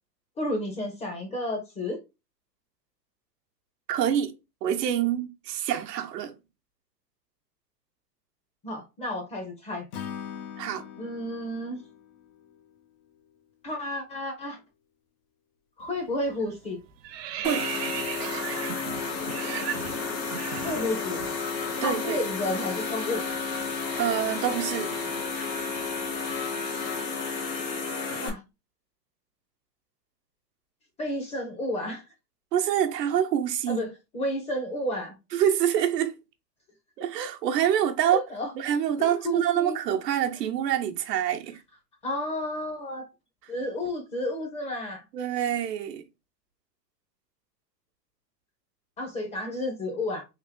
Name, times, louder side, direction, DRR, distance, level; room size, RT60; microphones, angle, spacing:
voice 1, 0.4-2.0 8.6-9.9 11.0-11.8 13.6-14.6 15.8-16.8 20.6-21.2 21.8-23.3 28.2-28.4 31.0-32.0 33.7-35.2 38.0-38.5 39.0-39.8 42.0-43.1 43.5-45.0 49.0-50.3, left 1 dB, 15° left, 0.6 m, -31 dB
voice 2, 3.9-4.3 4.6-6.3 10.6-10.8 17.4-17.7 21.8-22.2 24.0-25.0 32.5-33.8 35.3-36.2 37.0-38.2 38.6-41.6 45.1-46.0, right 10 dB, 75° right, 0.9 m, -26 dB
Acoustic guitar / Strum, 9.9-13.2, left 8 dB, 65° left, 0.9 m, -42 dB
sound 1, 15.8-16.1 16.4-21.3 21.6-21.8 22.1-26.2, right 10 dB, 40° right, 0.5 m, -38 dB
sound 2, 17.4-28.3, left 4 dB, 90° left, 1.8 m, -32 dB
3.7 x 2.5 x 3.5 m
hypercardioid pair, 135°, 49 cm